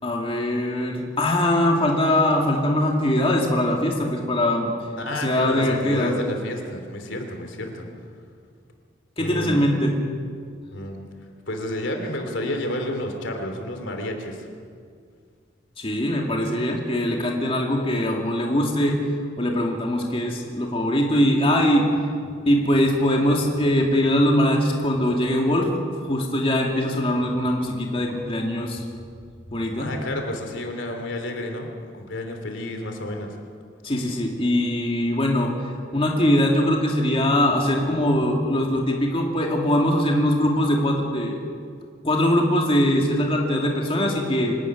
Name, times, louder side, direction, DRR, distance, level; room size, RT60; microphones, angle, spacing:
voice 1, 0.0-4.7 5.1-6.2 9.2-9.9 15.8-19.0 19.4-21.9 22.4-25.7 26.0-28.8 29.5-29.9 33.8-41.4 42.0-44.6, left 1 dB, 30° left, 0 dB, 2.5 m, -22 dB
voice 2, 5.0-7.9 9.2-9.6 10.7-11.0 11.5-14.5 29.8-33.3, left 1 dB, 75° left, 4 dB, 3.2 m, -30 dB
25.0 x 13.5 x 9.4 m, 2.2 s
head